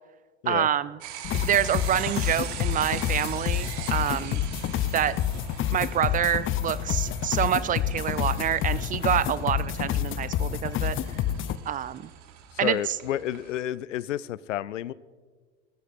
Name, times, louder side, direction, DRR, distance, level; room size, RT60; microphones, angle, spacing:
voice 1, 0.5-1.0 1.3-4.4 4.9-5.1 5.7-11.0 11.7-12.1 12.6-12.8, right 10 dB, 25° right, 17 dB, 0.4 m, -27 dB
sound 1, 1.0-13.6, right 11 dB, 50° right, 1.4 m, -42 dB
sound 2, 1.2-11.6, left 11 dB, 35° left, 0.6 m, -28 dB
voice 2, 12.6-14.9, left 12 dB, 85° left, 20 dB, 0.5 m, -30 dB
20.5 x 13.5 x 2.6 m, 1.4 s
hypercardioid pair, 75°, 36 cm